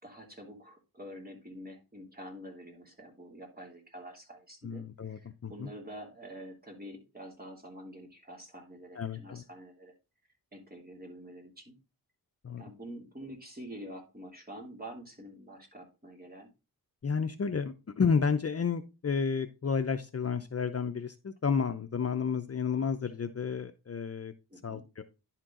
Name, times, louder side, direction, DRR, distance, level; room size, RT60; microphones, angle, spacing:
voice 1, 0.0-9.9 10.5-11.8 12.6-16.5 24.5-24.8, equal, 25° right, 1 dB, 3.0 m, -47 dB
voice 2, 4.6-5.7 8.9-9.4 12.4-12.6 17.0-24.3 24.6-25.0, left 6 dB, 40° left, 8 dB, 0.7 m, -31 dB
11.0 x 4.5 x 3.8 m, 0.29 s
cardioid pair, 65°, 38 cm